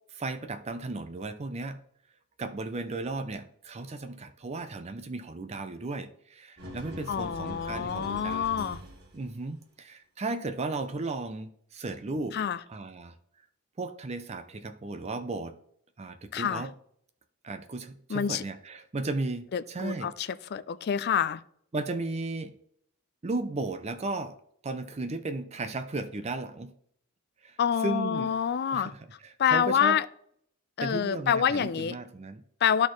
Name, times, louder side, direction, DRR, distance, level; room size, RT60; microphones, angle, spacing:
voice 1, 0.1-1.8 2.4-8.6 9.1-12.4 12.7-13.1 13.8-15.5 16.0-16.7 17.4-20.3 21.7-22.5 23.2-24.4 24.6-26.7 27.4-28.3 28.7-30.0 30.8-32.4, right 3 dB, 30° right, 9 dB, 0.5 m, -35 dB
sound 1, 6.6-9.3, equal, 50° right, 1.8 m, -42 dB
voice 2, 7.1-8.8 12.3-12.6 16.3-16.6 18.1-18.4 19.5-21.4 27.6-28.9 29.4-30.1 30.8-31.9 32.6-32.9, left 8 dB, 45° left, 14 dB, 0.3 m, -27 dB
12.0 x 4.2 x 3.1 m, 0.66 s
head